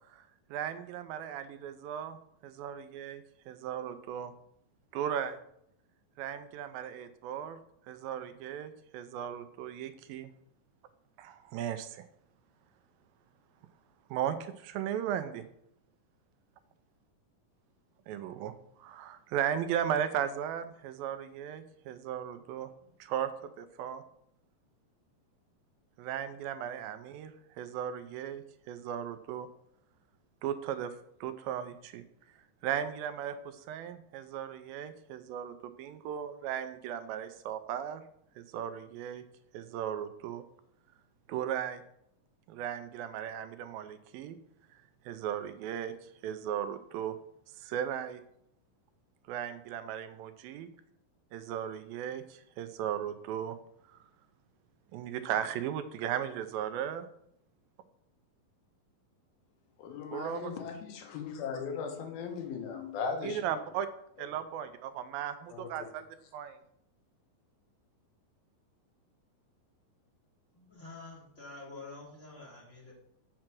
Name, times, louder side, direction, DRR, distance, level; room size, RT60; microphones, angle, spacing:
voice 1, 0.5-2.2 2.4-4.3 4.9-5.4 6.2-7.6 7.9-10.3 11.2-12.1 14.1-15.4 18.1-22.7 23.0-24.0 26.0-29.5 30.4-30.9 31.2-32.0 32.6-38.0 38.4-39.2 39.5-40.4 41.3-41.8 42.5-44.4 45.1-47.2 47.6-48.2 49.3-50.7 51.3-53.6 53.9-54.0 54.9-57.0 60.1-60.6 63.2-63.9 64.2-66.1 66.3-66.6, right 9 dB, 85° right, 11 dB, 2.4 m, -36 dB
voice 2, 59.8-63.6 65.5-65.9, left 5 dB, 85° left, 4 dB, 3.0 m, -38 dB
voice 3, 70.5-72.9, left 3 dB, 20° left, -5 dB, 2.9 m, -48 dB
7.6 x 5.7 x 6.0 m, 0.74 s
omnidirectional pair, 4.1 m